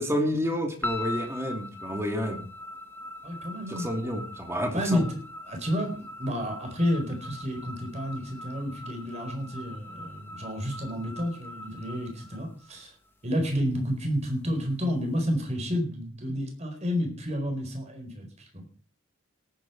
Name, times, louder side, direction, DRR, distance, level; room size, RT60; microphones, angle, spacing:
voice 1, 0.0-2.4 3.7-5.0, equal, 10° right, 4 dB, 2.5 m, -29 dB
sound 1, 0.8-13.1, left 1 dB, 10° left, 1.5 m, -41 dB
voice 2, 3.2-3.9 4.7-5.2 5.5-12.9 13.2-18.7, equal, 30° right, 4 dB, 4.4 m, -30 dB
18.0 x 9.7 x 4.6 m, 0.40 s
head